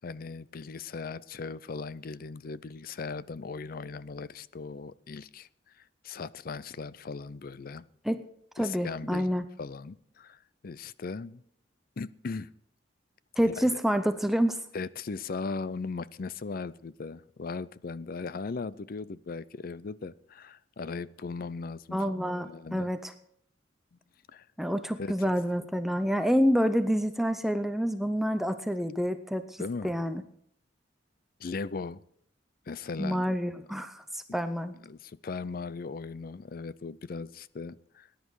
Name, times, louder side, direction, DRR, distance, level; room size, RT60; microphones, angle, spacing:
voice 1, 0.0-5.5 5.8-7.8 8.6-9.3 9.6-11.4 12.0-12.5 13.4-13.8 14.7-22.9 23.9-24.0 24.3-24.4 25.0-25.4 29.6-30.0 31.4-32.0 32.7-33.3 34.3-34.4 34.8-38.1, left 4 dB, 50° left, 0.5 m, -38 dB
voice 2, 8.6-9.4 13.4-14.6 21.9-23.1 24.6-30.2 33.0-34.7, equal, ahead, 0.5 m, -28 dB
19.0 x 10.5 x 4.8 m
head